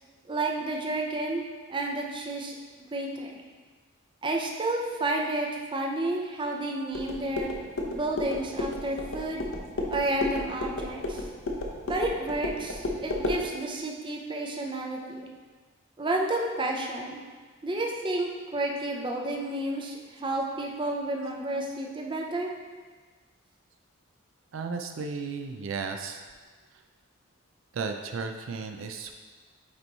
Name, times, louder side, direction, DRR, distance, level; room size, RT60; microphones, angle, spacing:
voice 1, 0.3-1.4 1.7-2.5 2.9-3.4 4.2-7.5 7.9-9.4 9.9-11.2 11.9-15.3 16.0-17.2 17.6-22.5, right 2 dB, 25° right, 0 dB, 0.6 m, -31 dB
sound 1, 6.9-13.4, left 1 dB, 75° left, 0.8 m, -33 dB
voice 2, 24.5-26.2 27.7-29.1, right 4 dB, 70° right, 5 dB, 0.4 m, -34 dB
8.6 x 3.0 x 4.0 m, 1.4 s
head